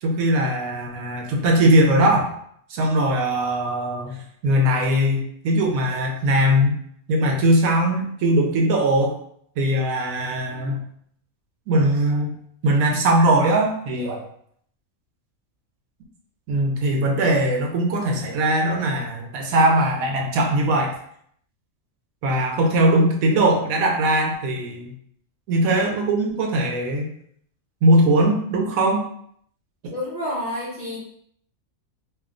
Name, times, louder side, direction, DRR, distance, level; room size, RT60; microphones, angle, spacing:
voice 1, 0.0-2.3 2.7-6.8 7.1-9.1 9.6-10.8 11.7-12.3 12.6-14.2 16.5-21.0 22.2-24.9 25.5-27.1 27.8-29.0, right 1 dB, 75° right, 1 dB, 1.1 m, -20 dB
voice 2, 29.9-31.0, left 1 dB, 35° left, -7 dB, 0.8 m, -29 dB
2.7 x 2.2 x 3.7 m, 0.65 s
omnidirectional pair, 1.5 m